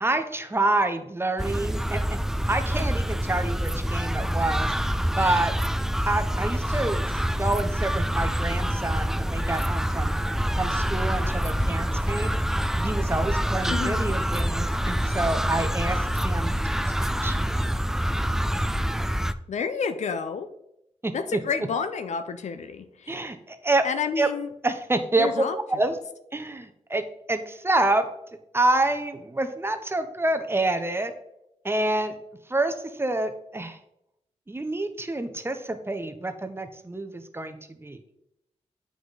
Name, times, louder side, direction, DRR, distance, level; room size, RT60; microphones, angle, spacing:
voice 1, 0.0-2.0 2.5-4.7 5.2-7.1 7.4-10.2 10.6-12.3 12.8-16.5 17.0-17.6 21.0-21.4 23.1-23.9 24.2-24.3 24.6-25.3 25.7-26.0 26.3-27.0 27.3-28.1 28.5-31.1 31.6-32.2 32.5-33.8 34.5-38.0, right 2 dB, 20° right, 8 dB, 0.8 m, -27 dB
sound 1, 1.4-19.3, equal, 5° right, 0.3 m, -26 dB
voice 2, 13.7-14.2 19.5-20.5 21.1-23.2 23.8-24.5 25.2-25.6, left 5 dB, 75° left, 9 dB, 0.6 m, -30 dB
7.7 x 4.9 x 4.0 m, 0.81 s
cardioid pair, 75°, 12 cm